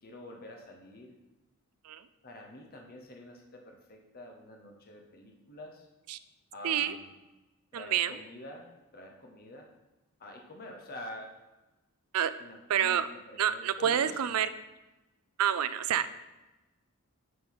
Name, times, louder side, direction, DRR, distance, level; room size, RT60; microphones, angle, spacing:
voice 1, 0.0-1.2 2.2-5.9 6.5-7.1 7.7-9.7 10.2-11.4 12.4-13.0 13.3-14.5 16.0-16.1, left 1 dB, 45° left, 1 dB, 0.9 m, -47 dB
voice 2, 6.6-6.9 7.7-8.2 12.1-12.3 12.7-13.1 13.4-14.5 15.4-16.1, right 9 dB, 75° right, 13 dB, 0.4 m, -28 dB
9.4 x 4.5 x 4.1 m, 1.0 s
head